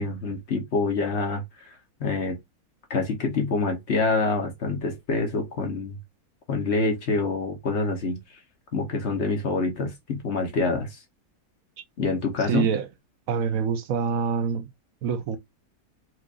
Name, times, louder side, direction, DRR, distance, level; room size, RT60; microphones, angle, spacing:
voice 1, 0.0-1.7 2.0-2.4 2.9-6.0 6.5-8.2 8.7-11.0 12.0-12.6, left 3 dB, 50° left, 1.1 m, -26 dB
voice 2, 12.5-12.9 13.3-14.7 15.0-15.4, right 7 dB, 65° right, 1.0 m, -25 dB
4.5 x 2.5 x 2.4 m
omnidirectional pair, 1.7 m